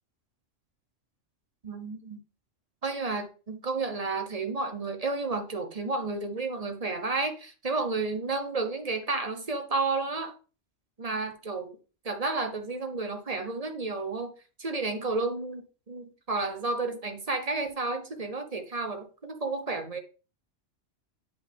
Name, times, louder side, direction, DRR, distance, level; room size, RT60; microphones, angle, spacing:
voice 1, 1.6-2.2 2.8-10.3 11.0-11.8 12.0-14.3 14.6-20.0, right 3 dB, 35° right, 6 dB, 1.0 m, -31 dB
8.0 x 5.3 x 3.6 m, 0.35 s
omnidirectional pair, 1.3 m